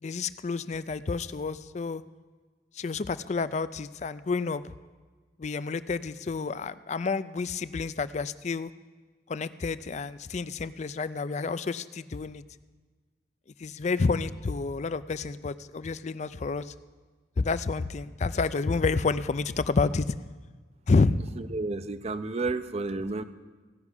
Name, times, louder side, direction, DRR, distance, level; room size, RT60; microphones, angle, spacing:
voice 1, 0.0-2.0 2.7-4.7 5.4-8.7 9.3-12.4 13.6-16.7 17.4-20.2 20.9-21.2, left 4 dB, 40° left, 14 dB, 0.4 m, -29 dB
voice 2, 21.4-23.2, right 3 dB, 35° right, 11 dB, 0.5 m, -31 dB
16.5 x 6.0 x 9.6 m, 1.4 s
head